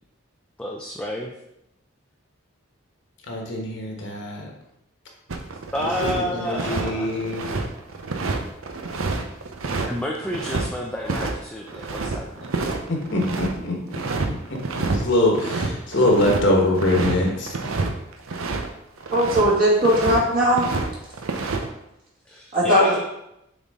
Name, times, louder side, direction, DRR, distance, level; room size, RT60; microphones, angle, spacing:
voice 1, 0.6-1.3 5.7-7.1 9.9-12.5 22.3-23.0, left 1 dB, 5° left, -1 dB, 0.4 m, -30 dB
voice 2, 3.3-4.5 6.0-7.5 12.9-13.7 14.5-17.5, left 1 dB, 55° left, 0 dB, 1.3 m, -23 dB
sound 1, 5.3-6.2 6.5-10.7 11.1-11.3 11.6-13.5 13.9-14.3 14.5-15.0 15.3-18.7 19.0-19.5 19.8-20.9 21.1-21.6, right 3 dB, 85° right, 0.7 m, -28 dB
voice 3, 19.1-20.7 22.5-23.0, equal, 45° right, -6 dB, 2.2 m, -18 dB
6.7 x 4.2 x 3.7 m, 0.85 s
head